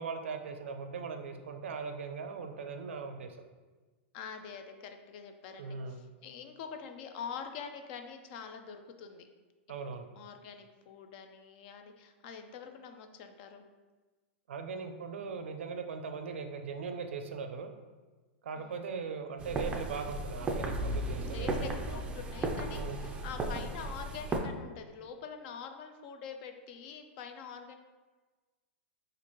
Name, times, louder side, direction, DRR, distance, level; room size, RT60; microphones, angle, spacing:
voice 1, 0.0-3.4 5.6-6.0 9.7-10.1 14.5-17.7 18.4-21.7 22.7-23.0, right 5 dB, 85° right, 6 dB, 0.4 m, -39 dB
voice 2, 4.1-9.3 9.8-13.6 18.6-18.9 21.3-27.7, left 6 dB, 50° left, 6 dB, 0.4 m, -45 dB
sound 1, 19.4-24.4, right 2 dB, 15° right, 0.4 m, -35 dB
4.2 x 2.5 x 2.9 m, 1.3 s
hypercardioid pair, 125°, 6 cm